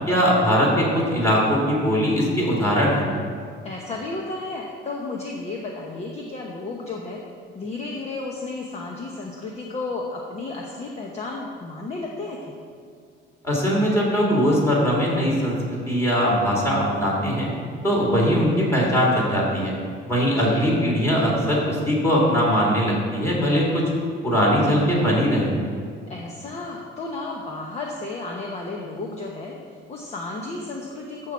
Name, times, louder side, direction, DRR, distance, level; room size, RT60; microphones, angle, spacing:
voice 1, 0.1-3.1 13.4-15.6 15.9-17.5 17.8-19.7 20.0-23.8 24.2-25.6, equal, 15° left, -4 dB, 2.8 m, -20 dB
voice 2, 3.6-7.2 7.5-12.6 20.4-21.0 26.1-29.5 29.9-31.3, left 3 dB, 35° left, -1 dB, 0.9 m, -33 dB
13.0 x 4.7 x 7.4 m, 2.1 s
cardioid pair, 165°, 20 cm